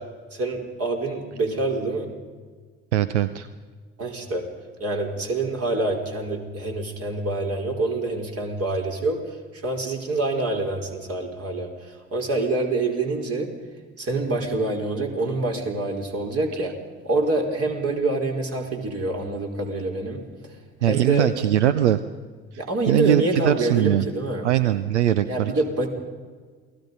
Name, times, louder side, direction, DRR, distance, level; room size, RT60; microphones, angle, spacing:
voice 1, 0.3-2.1 4.0-4.5 4.8-13.5 14.0-16.7 17.0-20.2 20.8-21.3 22.5-24.4 25.3-25.9, right 2 dB, 45° right, 1 dB, 4.8 m, -26 dB
voice 2, 2.9-3.5 20.8-22.0 22.9-24.0 24.4-25.5, right 11 dB, 85° right, 14 dB, 0.6 m, -21 dB
28.5 x 19.5 x 5.5 m, 1.5 s
figure-of-eight pair, 55°, 34 cm